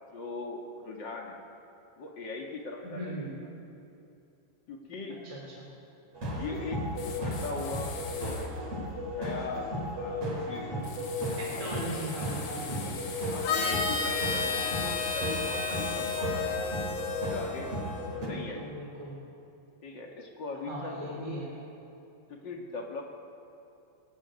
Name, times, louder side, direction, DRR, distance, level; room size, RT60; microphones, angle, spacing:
voice 1, 0.1-1.4 2.0-3.2 4.7-5.2 6.2-8.5 9.1-10.8 11.5-12.0 12.6-12.8 13.2-16.6 17.2-17.7 18.2-18.7 19.8-21.4 22.3-23.1, left 3 dB, 50° left, 0 dB, 1.3 m, -40 dB
voice 2, 2.8-3.3 5.1-5.7 11.4-13.0 18.1-19.2 20.7-21.5, right 1 dB, 10° right, -4 dB, 3.3 m, -39 dB
sound 1, 6.1-18.3, equal, 35° right, 5.1 m, -35 dB
sound 2, 7.0-8.5 10.8-16.2, left 6 dB, 80° left, 4.7 m, -43 dB
Harmonica, 13.4-18.2, left 5 dB, 65° left, 3.6 m, -32 dB
22.0 x 17.5 x 9.6 m, 2.7 s
omnidirectional pair, 5.2 m